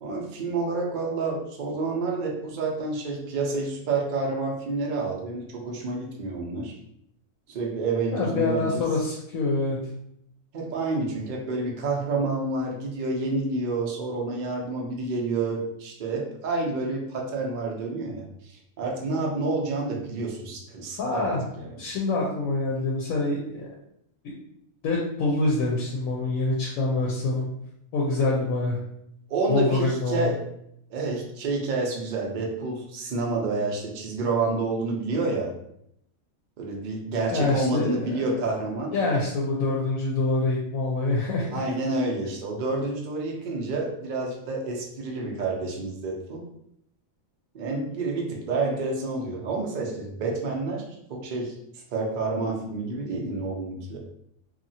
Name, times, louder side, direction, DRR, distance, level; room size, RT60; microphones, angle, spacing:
voice 1, 0.0-6.7 7.5-8.8 10.5-21.3 21.6-21.7 29.3-30.4 30.9-35.5 36.6-38.9 41.5-46.5 47.5-50.8 51.1-54.0, right 3 dB, 60° right, -1 dB, 0.5 m, -29 dB
voice 2, 8.1-9.8 21.0-21.4 21.8-23.7 24.2-24.3 24.8-27.5 27.9-28.8 29.5-30.3 37.3-38.2 38.9-41.6, left 2 dB, 80° left, -2 dB, 1.0 m, -25 dB
2.8 x 2.4 x 2.7 m, 0.74 s
omnidirectional pair, 1.4 m